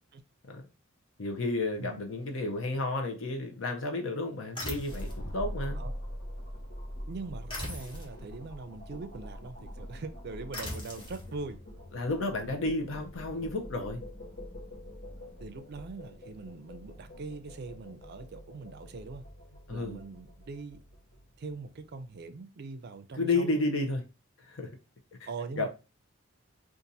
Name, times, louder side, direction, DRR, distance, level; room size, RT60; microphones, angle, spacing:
voice 1, 1.2-5.8 11.9-14.0 19.7-20.0 23.1-24.0 24.4-24.7 25.2-25.3 25.6-25.7, left 2 dB, 70° left, 0.7 m, -32 dB
sound 1, 4.5-5.2 7.5-8.1 10.5-11.2, left 1 dB, 25° left, 1.0 m, -39 dB
sound 2, 4.9-22.1, equal, 50° left, 1.4 m, -44 dB
voice 2, 7.1-11.6 15.4-19.2 19.7-20.8 21.4-23.7 25.3-25.7, right 3 dB, 55° right, 0.4 m, -42 dB
2.7 x 2.5 x 3.9 m
head